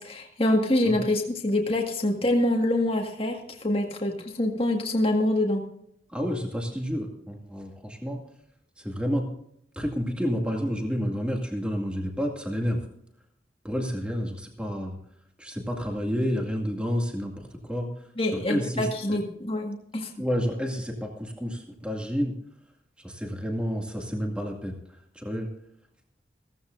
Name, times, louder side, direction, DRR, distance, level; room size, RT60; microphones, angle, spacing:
voice 1, 0.0-5.6 18.2-20.1, left 1 dB, 30° left, 1 dB, 1.8 m, -25 dB
voice 2, 6.1-8.2 8.8-9.3 9.8-12.8 13.6-15.0 15.4-17.9 18.3-19.2 20.2-22.4 23.0-24.8 25.1-25.5, equal, 5° right, 1 dB, 2.2 m, -30 dB
16.5 x 15.0 x 2.6 m, 0.71 s
head